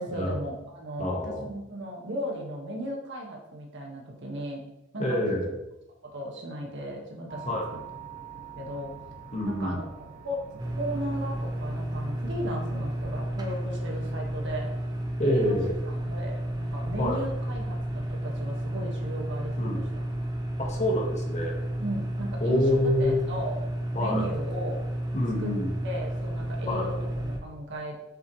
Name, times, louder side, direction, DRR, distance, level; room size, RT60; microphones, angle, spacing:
voice 1, 0.0-4.7 4.9-5.2 6.0-7.4 8.4-8.9 9.4-9.8 10.2-10.4 10.8-14.7 15.2-15.6 15.8-20.0 21.8-23.6 24.0-24.8 25.4-25.5 25.8-28.0, right 1 dB, 60° right, 0 dB, 1.7 m, -36 dB
voice 2, 1.0-1.5 5.0-5.5 7.4-7.6 9.3-9.8 15.2-15.7 17.0-17.2 19.6-19.8 20.6-21.5 22.4-23.2 23.9-24.3 25.1-25.7 26.7-26.9, left 1 dB, 35° left, 0 dB, 1.5 m, -27 dB
sound 1, 7.3-13.1, right 6 dB, 40° right, 1.7 m, -45 dB
sound 2, 10.6-27.4, right 1 dB, 20° right, 1.0 m, -32 dB
7.5 x 6.9 x 3.2 m, 0.92 s
head